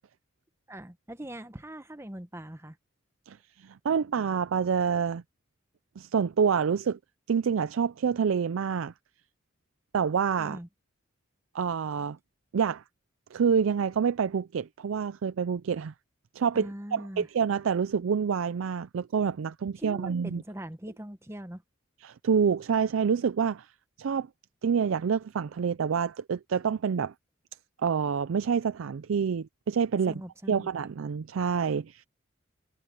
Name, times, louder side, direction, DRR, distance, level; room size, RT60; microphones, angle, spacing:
voice 1, 0.7-2.8 10.4-10.7 16.5-17.3 19.8-21.6 30.1-30.9, right 1 dB, 15° right, 1.0 m, -41 dB
voice 2, 3.3-5.2 6.0-7.0 7.3-8.9 9.9-10.6 11.5-12.2 12.5-12.8 13.3-15.9 16.3-20.4 22.0-23.7 24.0-24.3 24.6-27.1 27.8-30.2 30.5-32.0, right 6 dB, 85° right, 0.4 m, -27 dB
head